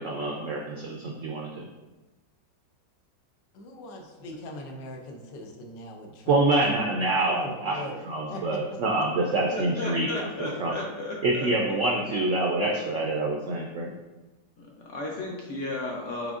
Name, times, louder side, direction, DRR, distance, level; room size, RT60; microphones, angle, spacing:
voice 1, 0.0-1.5 6.3-10.1 10.4-10.7 11.2-13.9, right 2 dB, 80° right, -1 dB, 0.7 m, -26 dB
voice 2, 3.5-6.4 6.8-7.0 7.3-8.0 8.3-8.8, left 1 dB, 90° left, 2 dB, 1.4 m, -40 dB
voice 3, 9.5-11.5 14.6-16.3, left 2 dB, 70° left, -1 dB, 0.7 m, -34 dB
5.1 x 3.8 x 2.4 m, 1.1 s
omnidirectional pair, 1.9 m